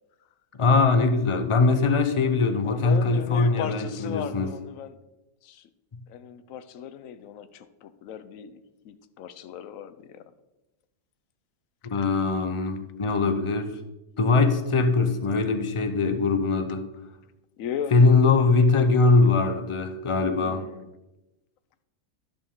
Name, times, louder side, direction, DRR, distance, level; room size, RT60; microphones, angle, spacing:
voice 1, 0.5-4.5 11.9-13.7 14.2-16.9 17.9-20.6, left 3 dB, 35° left, 8 dB, 0.5 m, -21 dB
voice 2, 2.6-5.0 5.4-5.7 6.1-10.3 17.6-18.0 20.4-20.9, left 8 dB, 85° left, 12 dB, 1.0 m, -37 dB
10.5 x 6.9 x 3.7 m, 0.99 s
omnidirectional pair, 1.4 m